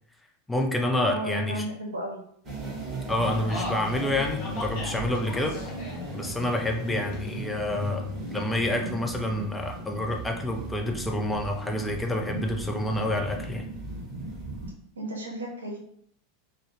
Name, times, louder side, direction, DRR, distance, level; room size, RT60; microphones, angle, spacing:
voice 1, 0.5-1.6 3.1-5.6 6.1-13.7, left 1 dB, 10° left, 2 dB, 0.4 m, -28 dB
voice 2, 1.1-2.2 15.0-15.8, right 1 dB, 75° right, 1 dB, 0.6 m, -33 dB
sound 1, 2.4-14.7, right 2 dB, 25° right, 1.0 m, -36 dB
sound 2, 3.3-8.4, left 2 dB, 45° left, 0.8 m, -40 dB
2.3 x 2.1 x 3.0 m, 0.66 s
figure-of-eight pair, 85°, 0 cm